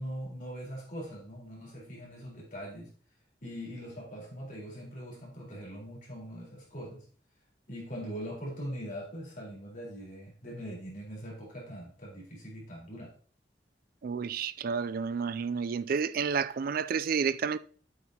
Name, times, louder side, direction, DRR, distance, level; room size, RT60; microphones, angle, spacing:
voice 1, 0.0-2.9 3.4-7.0 7.7-13.1, equal, 50° left, 4.1 m, -41 dB
voice 2, 14.0-17.6, right 6 dB, 55° right, 0.3 m, -30 dB
8.3 x 8.1 x 2.9 m
head